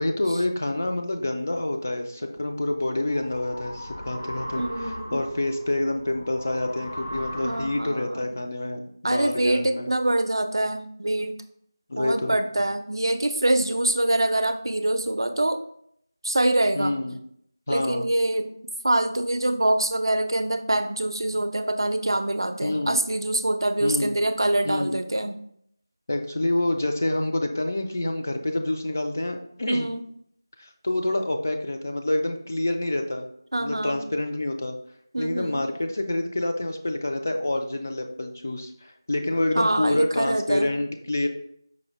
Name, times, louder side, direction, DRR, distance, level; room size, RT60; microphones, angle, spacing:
voice 1, 0.0-9.9 11.9-12.4 16.7-17.2 17.7-18.1 22.6-23.0 23.8-24.2 24.7-25.0 26.1-29.9 30.6-33.3 33.6-34.8 35.2-41.3, left 1 dB, 35° left, 4 dB, 0.3 m, -27 dB
sound 1, 2.5-8.2, equal, 85° left, 1.3 m, -38 dB
voice 2, 4.6-5.2 7.4-8.2 9.0-11.4 12.0-15.6 16.2-17.0 17.7-18.5 18.8-25.4 29.7-30.1 33.5-34.1 35.1-35.6 39.5-40.7, right 1 dB, 85° right, 9 dB, 0.4 m, -25 dB
4.8 x 2.1 x 2.9 m, 0.68 s
figure-of-eight pair, 175°, 2 cm